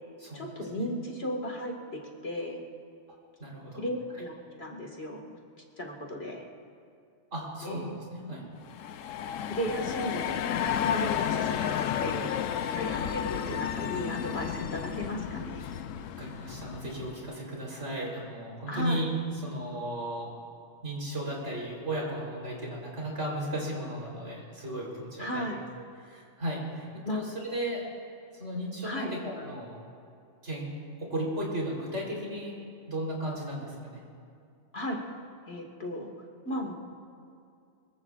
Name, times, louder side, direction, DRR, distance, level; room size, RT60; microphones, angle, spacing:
voice 1, 0.3-2.6 3.8-4.3 4.6-5.4 5.8-6.5 7.6-7.9 8.3-8.5 9.5-12.3 12.7-15.6 18.7-19.0 25.2-25.6 27.0-27.2 28.8-29.1 34.7-35.0 35.5-36.1 36.4-36.7, equal, 55° left, 0 dB, 2.1 m, -35 dB
voice 2, 3.4-3.8 7.3-8.4 12.9-13.0 16.2-19.1 19.4-20.3 20.8-25.5 26.0-27.8 28.4-29.8 30.4-30.7 31.0-32.5 32.9-34.0, right 1 dB, 65° right, -3 dB, 4.1 m, -35 dB
sound 1, 8.6-17.3, left 9 dB, 85° left, 1.0 m, -32 dB
24.0 x 22.5 x 2.5 m, 2.4 s
omnidirectional pair, 1.3 m